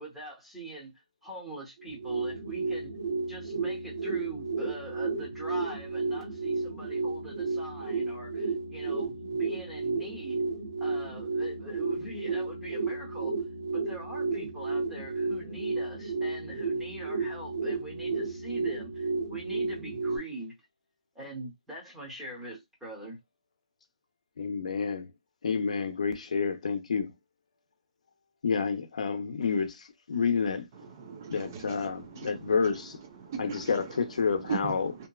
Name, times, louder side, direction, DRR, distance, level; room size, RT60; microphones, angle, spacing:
voice 1, 0.0-3.0 3.3-10.4 10.8-13.4 13.7-20.5 21.1-23.2, right 2 dB, 5° right, 0.8 m, -43 dB
sound 1, 1.8-20.2, right 3 dB, 65° right, 0.8 m, -32 dB
voice 2, 24.4-25.1 25.4-27.1 28.4-30.7 31.3-33.0 33.4-34.9, left 5 dB, 70° left, 0.6 m, -29 dB
voice 3, 30.7-35.1, right 6 dB, 25° right, 0.4 m, -40 dB
2.8 x 2.2 x 2.3 m
hypercardioid pair, 170°, 4 cm